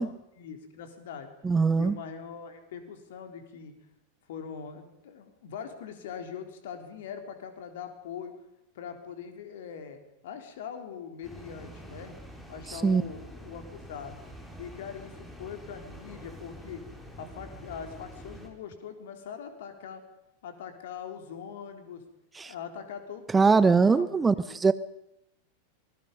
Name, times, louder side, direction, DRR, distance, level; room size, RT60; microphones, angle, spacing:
voice 1, 0.0-1.3 1.7-3.7 4.3-8.3 8.8-12.1 12.5-14.2 14.6-16.8 17.2-20.0 20.4-22.0 22.5-24.6, left 7 dB, 55° left, 3.7 m, -42 dB
voice 2, 1.4-1.9 12.8-13.0 22.4-22.5 23.3-24.7, right 4 dB, 15° right, 0.7 m, -22 dB
sound 1, 11.2-18.5, equal, 5° left, 4.8 m, -46 dB
25.0 x 20.0 x 5.4 m
figure-of-eight pair, 90°, 0 cm